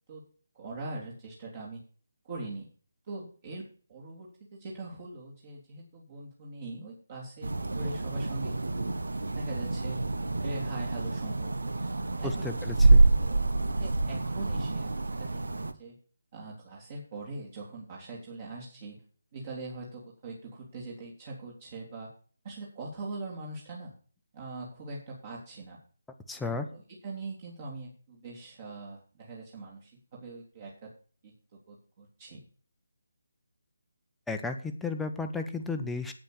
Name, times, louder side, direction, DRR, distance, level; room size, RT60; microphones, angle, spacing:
voice 1, 0.5-1.8 2.2-2.7 3.0-8.9 9.3-10.0 10.4-11.7 12.2-12.6 13.2-16.0 16.3-19.0 19.3-22.1 22.4-23.9 24.3-25.8 26.3-30.9 31.2-31.3 31.7-32.4, right 2 dB, 35° right, -3 dB, 3.4 m, -42 dB
sound 1, 7.4-15.7, right 2 dB, 65° right, 1.2 m, -27 dB
voice 2, 12.4-13.0 26.3-26.6 34.3-36.1, left 3 dB, 5° left, 5 dB, 1.0 m, -33 dB
9.2 x 8.8 x 6.6 m, 0.41 s
figure-of-eight pair, 150°, 0 cm